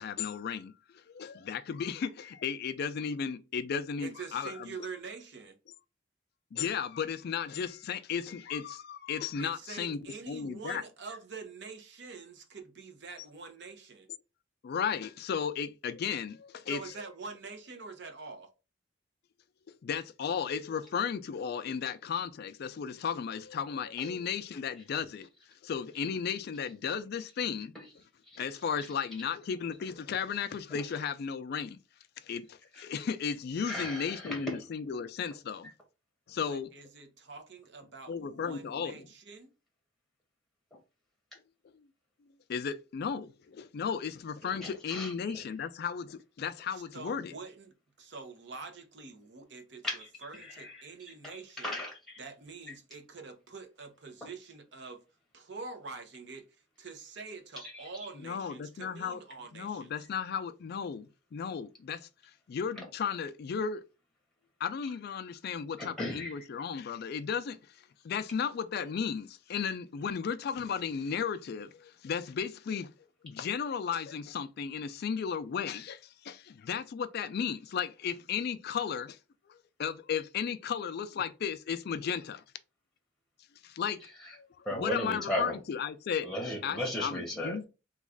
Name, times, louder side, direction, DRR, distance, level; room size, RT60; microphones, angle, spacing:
voice 1, 0.0-4.7 6.5-10.0 10.3-10.8 14.6-16.8 19.7-25.3 25.6-27.7 28.4-31.8 32.2-35.7 36.3-36.7 38.1-39.1 41.7-41.8 42.5-47.3 58.2-59.2 59.5-62.1 62.5-63.8 64.6-67.8 68.0-72.9 73.2-79.2 79.5-82.4 83.6-84.0 84.3-86.3 86.6-87.7, left 7 dB, 50° left, 0.3 m, -35 dB
voice 2, 4.0-5.6 9.4-14.1 16.7-18.5 36.4-39.5 46.7-51.8 52.2-55.0 55.3-56.5 56.8-60.1, right 4 dB, 60° right, 0.7 m, -46 dB
voice 3, 33.6-34.6 44.6-45.4 49.8-50.1 50.4-50.8 51.2-52.2 54.2-54.3 57.6-57.8 62.8-62.9 65.8-66.3 84.6-85.6 86.2-87.7, left 1 dB, ahead, 0.8 m, -36 dB
3.1 x 2.3 x 3.5 m
head